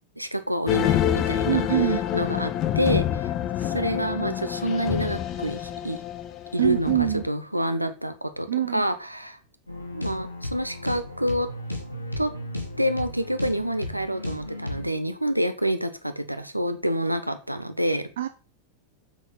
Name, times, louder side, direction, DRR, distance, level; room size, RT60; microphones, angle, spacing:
voice 1, 0.2-3.3 3.6-6.0 6.5-9.4 9.9-11.5 12.2-12.3 12.8-18.1, equal, 90° right, 9 dB, 1.1 m, -28 dB
sound 1, 0.7-7.3, left 10 dB, 35° left, 0.9 m, -27 dB
voice 2, 1.5-2.0 6.6-7.2 8.5-8.9 18.2-18.3, right 12 dB, 60° right, 9 dB, 0.6 m, -24 dB
sound 2, 9.7-14.9, left 1 dB, 85° left, 2.1 m, -35 dB
7.3 x 6.3 x 5.7 m, 0.37 s
figure-of-eight pair, 90°, 0 cm